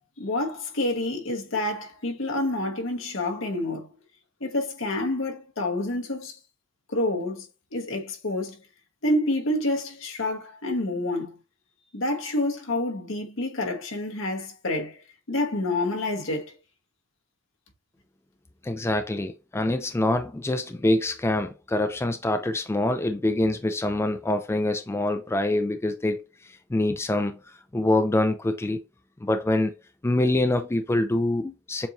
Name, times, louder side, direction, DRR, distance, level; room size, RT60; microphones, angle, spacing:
voice 1, 0.2-3.9 4.4-6.4 6.9-7.5 7.7-8.6 9.0-11.3 11.9-15.0 15.3-16.6, left 1 dB, 70° left, 1.3 m, -28 dB
voice 2, 18.6-27.4 27.7-28.8 29.2-29.7 30.0-31.9, left 1 dB, 15° left, 0.3 m, -25 dB
7.0 x 2.6 x 2.9 m
head